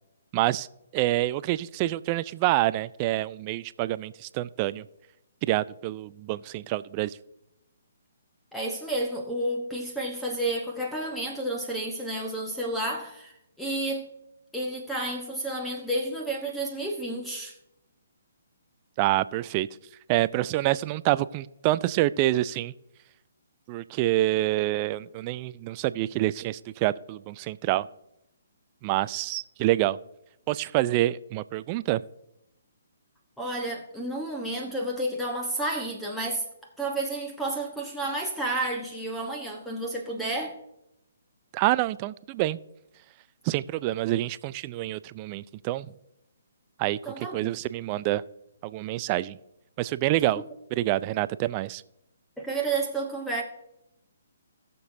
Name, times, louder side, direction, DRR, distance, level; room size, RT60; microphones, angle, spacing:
voice 1, 0.3-0.7 0.9-4.9 5.5-7.2 19.0-19.7 20.1-22.7 23.7-27.9 28.8-30.0 30.5-32.0 41.5-42.6 43.4-45.9 46.8-48.2 48.6-49.4 49.8-50.4 50.7-51.8, right 16 dB, 30° right, 0.3 m, -27 dB
voice 2, 8.5-14.1 14.5-17.6 33.4-36.4 36.8-40.6 47.0-47.5 50.2-50.3 52.4-53.4, right 2 dB, ahead, 1.1 m, -31 dB
20.0 x 6.9 x 2.7 m
figure-of-eight pair, 135°, 0 cm